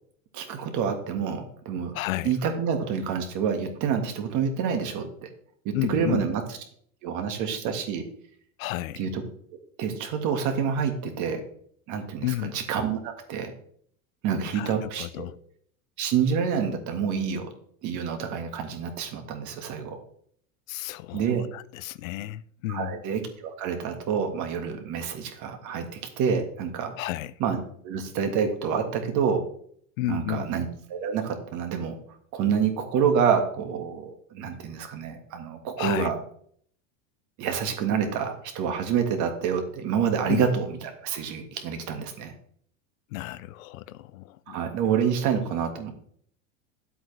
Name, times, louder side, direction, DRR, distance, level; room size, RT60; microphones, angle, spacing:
voice 1, 0.3-2.0 2.2-5.3 5.7-6.4 7.0-8.0 9.0-9.2 9.8-11.4 11.9-13.5 14.2-15.3 16.0-17.5 17.8-20.0 21.1-21.5 22.7-26.9 27.4-29.4 30.1-32.0 32.3-36.2 37.4-42.3 44.5-45.9, right 7 dB, 45° right, 1.8 m, -27 dB
voice 2, 1.9-2.3 5.7-6.2 8.6-9.1 12.2-12.5 14.5-15.4 20.7-23.0 27.0-27.3 30.0-30.5 35.8-36.1 40.3-40.4 43.1-44.6, left 16 dB, 85° left, 0.6 m, -32 dB
10.0 x 7.9 x 3.3 m
supercardioid pair, 130°, 40 cm